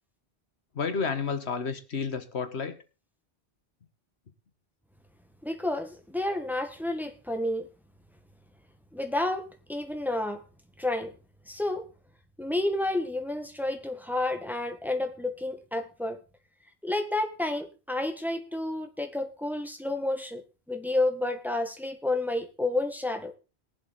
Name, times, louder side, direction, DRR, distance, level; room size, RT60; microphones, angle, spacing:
voice 1, 0.7-2.8, left 5 dB, 85° left, 9 dB, 1.6 m, -31 dB
voice 2, 5.4-7.7 8.9-10.4 10.8-11.1 11.5-11.8 12.4-16.2 16.8-20.4 20.7-23.3, left 2 dB, ahead, 6 dB, 1.6 m, -30 dB
20.5 x 7.6 x 4.1 m, 0.32 s
omnidirectional pair, 1.1 m